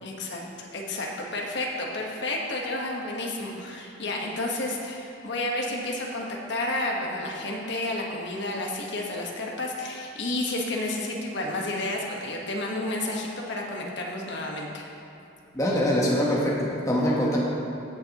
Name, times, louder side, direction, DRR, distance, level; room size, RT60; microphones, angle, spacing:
voice 1, 0.0-14.8, left 2 dB, 60° left, -1 dB, 1.3 m, -31 dB
voice 2, 15.5-17.4, equal, 15° left, -4 dB, 1.1 m, -24 dB
15.5 x 7.2 x 3.0 m, 2.7 s
head